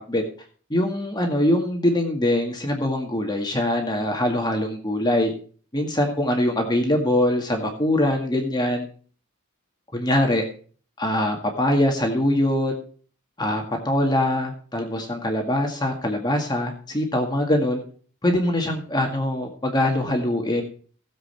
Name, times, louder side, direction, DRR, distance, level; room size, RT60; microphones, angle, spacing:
voice 1, 0.7-5.3 5.7-8.9 9.9-10.4 11.0-12.7 13.4-17.8 18.2-20.6, left 1 dB, 20° left, 3 dB, 1.9 m, -23 dB
17.0 x 7.7 x 4.3 m, 0.42 s
head